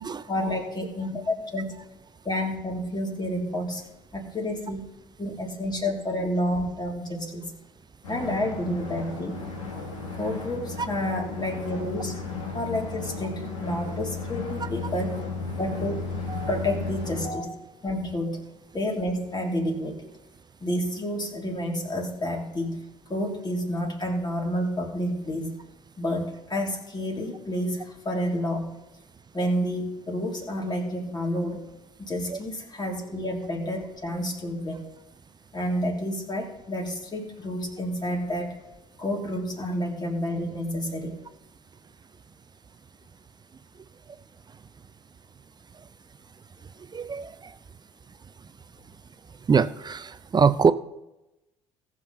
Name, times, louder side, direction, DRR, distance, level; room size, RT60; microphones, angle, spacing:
voice 1, 0.3-1.7 2.2-3.8 4.1-4.9 5.2-7.5 8.1-9.4 10.2-12.2 12.5-15.2 15.6-16.1 16.5-17.5 17.8-18.4 18.7-20.1 20.6-22.8 23.1-25.6 26.0-28.7 29.3-31.6 32.0-34.9 35.5-38.6 39.0-41.2, left 1 dB, 25° left, 0 dB, 3.1 m, -29 dB
sound 1, 8.0-17.3, left 4 dB, 80° left, 2.1 m, -34 dB
voice 2, 46.9-47.5 49.5-50.7, right 6 dB, 25° right, 14 dB, 0.6 m, -23 dB
18.5 x 6.2 x 4.2 m, 0.97 s
figure-of-eight pair, 50°, 16 cm